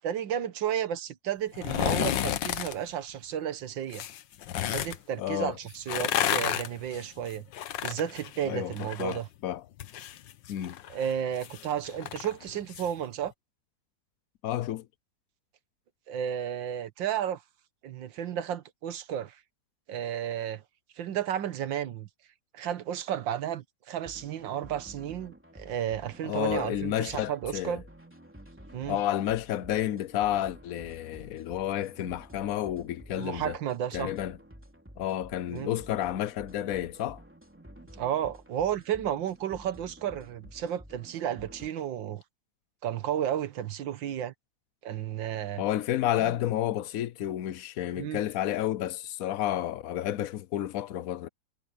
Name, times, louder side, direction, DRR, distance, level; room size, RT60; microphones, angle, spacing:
voice 1, 0.0-4.0 4.7-7.5 7.8-9.3 10.9-13.3 16.1-17.4 17.8-19.4 19.9-20.6 21.0-22.1 22.5-27.8 28.7-29.0 33.1-34.1 35.5-35.7 38.0-42.2 42.8-44.3 44.8-45.6 46.2-46.4 48.0-48.2, right 10 dB, 85° right, 1.8 m, -32 dB
sound 1, 1.5-2.7 3.9-5.0 5.7-9.2 9.5-12.9 13.2-13.3, left 11 dB, 80° left, 1.6 m, -31 dB
voice 2, 5.2-5.6 8.4-9.6 10.5-10.8 14.4-14.9 26.2-27.8 28.9-33.6 33.9-34.4 35.0-37.2 45.6-51.3, left 12 dB, 60° left, 1.0 m, -31 dB
sound 2, 24.0-41.7, equal, 5° right, 3.1 m, -51 dB
omnidirectional pair, 2.0 m